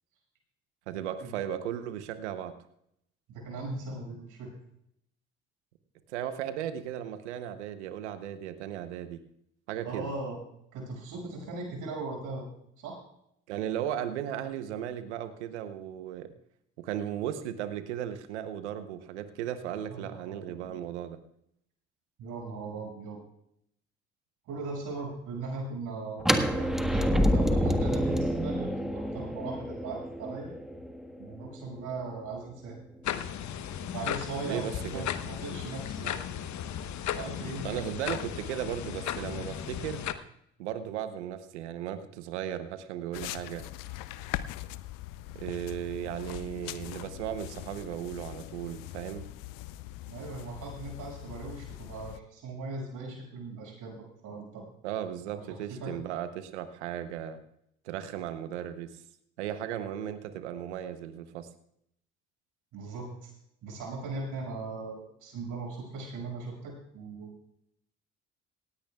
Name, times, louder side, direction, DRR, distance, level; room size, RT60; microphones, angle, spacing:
voice 1, 0.9-2.5 6.1-9.2 9.7-10.1 13.5-16.3 16.8-21.2 34.4-35.1 37.6-40.0 40.6-43.7 45.3-49.3 54.8-57.4 57.8-58.9 59.4-61.5, right 10 dB, 90° right, 11 dB, 0.9 m, -36 dB
voice 2, 3.3-4.5 9.8-10.4 10.7-12.5 12.8-13.0 19.9-20.8 22.2-23.2 24.5-30.5 31.2-32.8 33.8-36.2 37.0-37.8 50.1-54.6 55.3-55.9 62.7-63.3 63.6-67.3, right 3 dB, 65° right, 0 dB, 6.5 m, -39 dB
sound 1, 26.2-32.1, equal, ahead, 1.5 m, -28 dB
sound 2, 33.0-40.1, left 10 dB, 55° left, 1.1 m, -35 dB
raw nothing, 43.1-52.2, left 15 dB, 70° left, 0.7 m, -41 dB
18.0 x 16.5 x 2.4 m, 0.73 s
hypercardioid pair, 55°, 33 cm